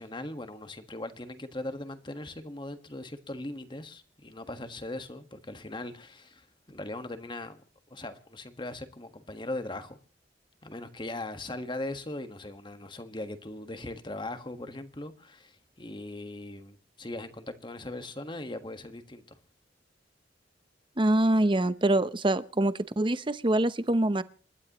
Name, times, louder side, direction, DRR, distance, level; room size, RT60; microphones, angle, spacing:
voice 1, 0.0-7.6 7.9-10.0 10.6-19.4, left 2 dB, 25° left, 1.5 m, -39 dB
voice 2, 21.0-24.2, right 1 dB, 25° right, 0.8 m, -25 dB
28.0 x 12.0 x 3.0 m
head